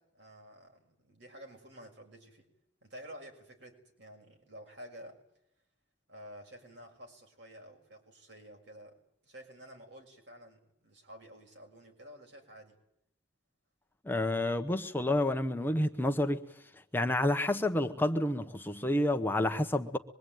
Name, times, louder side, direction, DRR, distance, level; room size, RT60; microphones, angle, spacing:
voice 1, 0.0-2.5 2.8-5.2 6.1-9.0 9.2-12.8, equal, 65° right, 6.6 m, -51 dB
voice 2, 14.0-16.4 16.9-20.0, left 1 dB, 10° left, 1.1 m, -29 dB
25.0 x 23.0 x 9.3 m
head